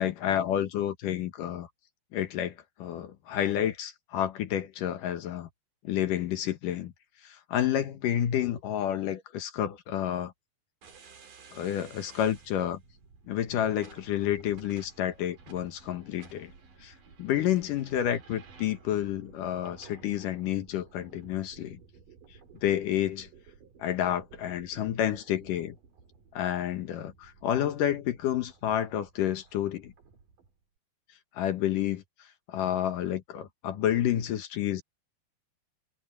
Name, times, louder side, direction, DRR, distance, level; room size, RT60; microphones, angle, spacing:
voice 1, 0.0-1.7 2.1-5.5 5.8-6.9 7.2-10.3 11.5-12.8 13.3-16.5 16.8-16.9 17.2-21.8 22.6-23.3 23.8-25.8 26.3-29.9 31.3-32.0 32.5-34.8, left 11 dB, 65° left, 2.6 m, -30 dB
sound 1, 10.8-30.5, right 5 dB, 60° right, 5.2 m, -54 dB
omnidirectional pair, 4.4 m